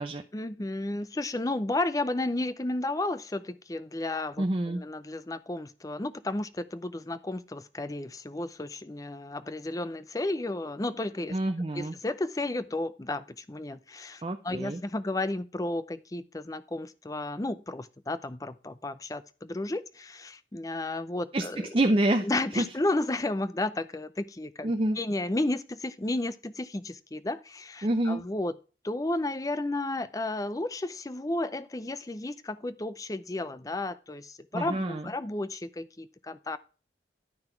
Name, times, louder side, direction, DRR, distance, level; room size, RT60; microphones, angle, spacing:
voice 1, 0.3-11.4 11.7-21.7 22.2-28.5 28.8-36.6, left 2 dB, 20° left, 15 dB, 0.5 m, -33 dB
voice 2, 4.4-4.8 11.3-11.9 14.2-14.8 21.3-22.3 22.6-22.7 24.6-25.0 27.8-28.2 34.5-35.0, right 1 dB, 30° right, 6 dB, 0.6 m, -27 dB
11.0 x 5.9 x 4.5 m, 0.35 s
head